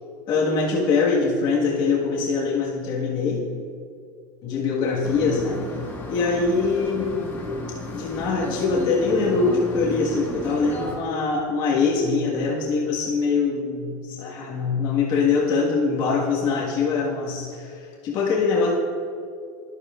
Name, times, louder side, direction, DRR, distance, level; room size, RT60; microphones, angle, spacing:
voice 1, 0.3-3.5 4.4-5.6 6.1-7.2 7.9-18.7, left 4 dB, 45° left, -5 dB, 1.6 m, -23 dB
sound 1, 5.0-11.0, left 2 dB, 20° left, 1.6 m, -34 dB
12.0 x 9.7 x 2.5 m, 2.2 s
supercardioid pair, 140°, 10 cm